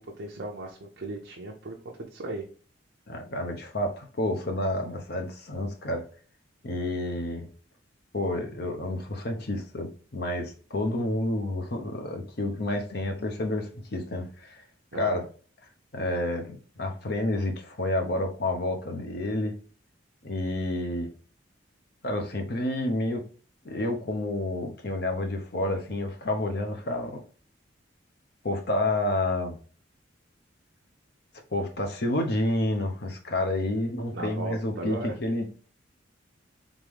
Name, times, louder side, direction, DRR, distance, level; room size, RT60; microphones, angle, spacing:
voice 1, 0.0-2.5 14.9-15.2 34.1-35.2, right 2 dB, 60° right, 0.6 m, -37 dB
voice 2, 3.1-6.0 6.6-7.5 8.1-14.6 14.9-15.2 15.9-19.5 20.2-21.1 22.0-23.2 23.6-27.2 28.4-29.6 31.5-35.5, left 1 dB, 55° left, 0.8 m, -29 dB
3.7 x 3.6 x 3.2 m
head